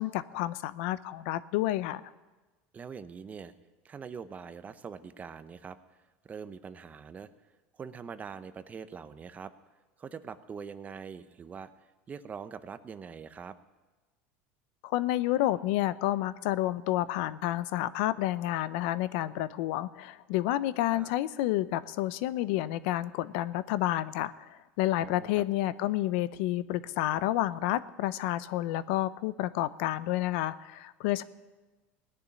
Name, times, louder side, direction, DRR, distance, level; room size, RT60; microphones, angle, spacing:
voice 1, 0.0-2.0 14.8-31.2, left 15 dB, 75° left, 16 dB, 0.6 m, -30 dB
voice 2, 2.7-3.5 3.8-6.0 6.2-7.3 7.7-9.5 10.0-13.6 20.9-21.1 25.0-25.4, right 6 dB, 25° right, 12 dB, 0.8 m, -43 dB
18.0 x 7.0 x 9.8 m, 1.2 s
supercardioid pair, 125°, 6 cm